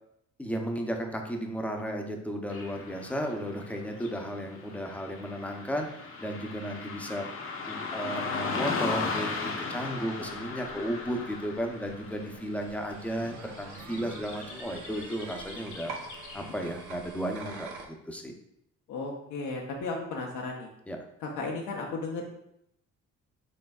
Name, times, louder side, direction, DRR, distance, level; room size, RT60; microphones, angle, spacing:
voice 1, 0.4-5.9 6.2-7.3 7.7-15.9 16.3-18.3 20.9-21.0, equal, 5° left, 3 dB, 0.6 m, -34 dB
Car passing by / Traffic noise roadway noise, 2.5-16.8, left 4 dB, 45° left, 0.7 m, -38 dB
sound 1, 10.4-17.9, right 3 dB, 75° right, 0.8 m, -46 dB
voice 2, 18.9-20.7 21.2-22.2, left 3 dB, 80° left, -1 dB, 0.7 m, -34 dB
5.3 x 3.3 x 2.3 m, 0.76 s
cardioid pair, 90°, 30 cm